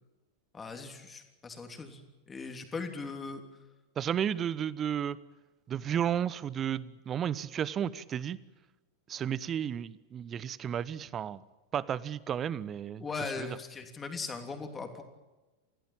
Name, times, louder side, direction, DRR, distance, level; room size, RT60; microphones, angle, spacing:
voice 1, 0.5-3.4 13.0-15.0, left 4 dB, 15° left, 5 dB, 3.2 m, -39 dB
voice 2, 4.0-5.2 5.7-8.4 9.1-11.4 11.7-13.1 13.4-13.6, right 9 dB, 25° right, 20 dB, 0.9 m, -33 dB
28.5 x 16.0 x 9.0 m, 1.1 s
figure-of-eight pair, 90°, 0 cm